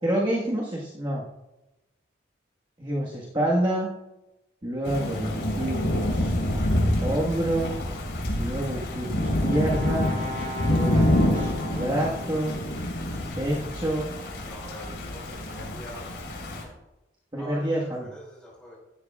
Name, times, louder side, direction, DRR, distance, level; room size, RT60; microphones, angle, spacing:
voice 1, 0.0-1.2 2.8-3.9 4.6-6.3 7.0-7.8 8.4-10.1 10.7-12.5 13.3-14.1 17.3-18.1, right 1 dB, 25° right, -5 dB, 1.5 m, -28 dB
Thunder / Rain, 4.8-16.6, left 1 dB, 65° left, 3.9 m, -27 dB
Brass instrument, 8.6-12.7, left 2 dB, 60° right, 2.5 m, -38 dB
voice 2, 14.4-16.1 17.3-18.8, equal, 5° left, -4 dB, 4.8 m, -44 dB
16.5 x 11.5 x 2.4 m, 0.97 s
head